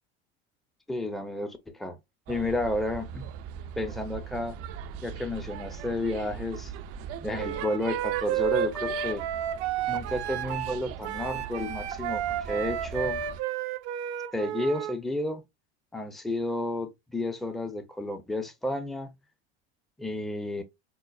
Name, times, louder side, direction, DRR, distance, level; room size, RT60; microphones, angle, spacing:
voice 1, 0.9-2.0 2.3-3.3 3.8-4.6 5.0-6.7 7.2-9.2 9.9-13.2 14.3-15.4 15.9-19.1 20.0-20.6, left 1 dB, ahead, 0.6 m, -31 dB
sound 1, 2.3-13.4, right 8 dB, 45° right, 0.4 m, -40 dB
Wind instrument woodwind instrument, 7.4-14.9, right 10 dB, 80° right, 0.8 m, -31 dB
5.2 x 2.0 x 2.4 m
hypercardioid pair, 85°, 33 cm